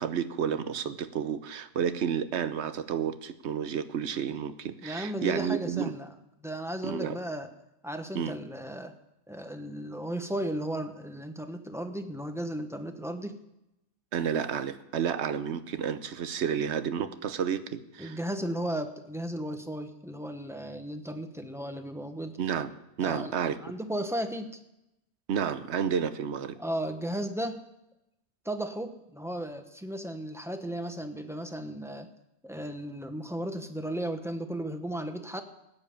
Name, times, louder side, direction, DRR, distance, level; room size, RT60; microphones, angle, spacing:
voice 1, 0.0-5.9 6.8-7.2 8.1-8.4 14.1-18.2 22.4-23.6 25.3-26.6, right 8 dB, 75° right, 12 dB, 1.1 m, -31 dB
voice 2, 4.8-6.1 6.4-7.5 7.8-9.0 9.3-13.3 18.0-22.4 23.0-23.3 23.6-24.6 26.6-27.6 28.4-32.1 32.4-35.4, right 1 dB, 5° right, 7 dB, 0.9 m, -35 dB
15.0 x 9.6 x 7.0 m, 0.89 s
omnidirectional pair, 1.1 m